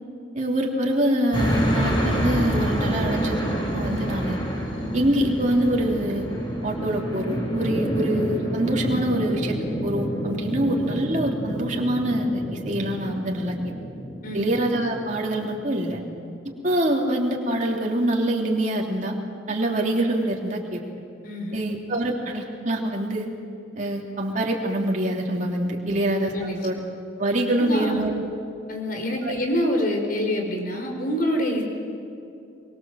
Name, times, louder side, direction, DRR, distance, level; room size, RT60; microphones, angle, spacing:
voice 1, 0.3-3.4 3.7-4.4 4.9-6.3 6.6-9.6 9.8-13.7 14.3-16.0 16.4-19.1 19.5-20.8 21.5-23.3 23.7-26.8 27.2-28.4 29.2-29.3, right 1 dB, 40° right, -1 dB, 3.1 m, -25 dB
sound 1, 1.3-15.6, equal, 25° left, 3.9 m, -28 dB
voice 2, 21.2-21.6 25.9-26.0 26.3-26.6 27.6-28.0 28.7-31.6, equal, 45° left, 2 dB, 4.6 m, -26 dB
24.0 x 24.0 x 7.7 m, 2.6 s
head